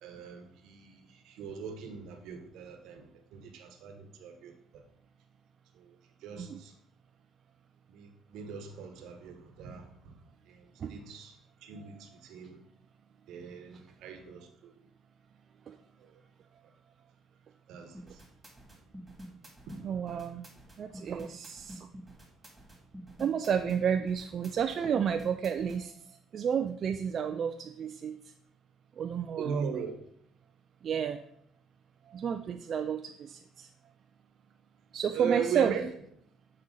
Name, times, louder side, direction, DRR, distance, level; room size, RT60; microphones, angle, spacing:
voice 1, 0.0-3.0 3.3-4.5 6.2-6.7 7.9-9.9 10.5-10.6 10.9-11.3 11.6-12.6 13.3-14.7 17.7-17.9 19.7-19.8 29.4-30.0 35.1-35.9, right 6 dB, 75° right, 5 dB, 1.1 m, -39 dB
sound 1, 17.9-25.8, equal, 10° right, 2.1 m, -47 dB
voice 2, 19.8-20.4 20.8-21.9 23.2-26.0 26.3-28.2 29.0-29.6 30.8-31.2 32.1-33.7 34.9-35.8, right 7 dB, 55° right, 7 dB, 0.3 m, -31 dB
7.6 x 4.2 x 3.8 m, 0.69 s
supercardioid pair, 80°, 0 cm